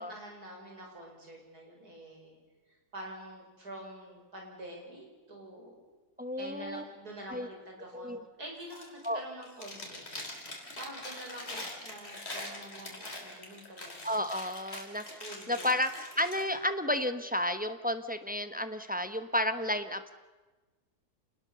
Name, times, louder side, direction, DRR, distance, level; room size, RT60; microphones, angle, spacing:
voice 1, 0.0-2.4 2.7-5.7 6.4-10.0 10.5-14.1 15.1-15.8, right 1 dB, 80° right, 1 dB, 6.0 m, -47 dB
voice 2, 6.2-6.8 7.3-7.5 7.9-8.2 9.0-9.2 14.0-15.2 15.5-20.1, left 1 dB, 5° right, 9 dB, 0.9 m, -32 dB
Chewing mastication, 8.6-9.1 9.4-16.4, left 1 dB, 40° left, 4.2 m, -43 dB
28.0 x 20.0 x 6.9 m, 1.2 s
omnidirectional pair, 1.6 m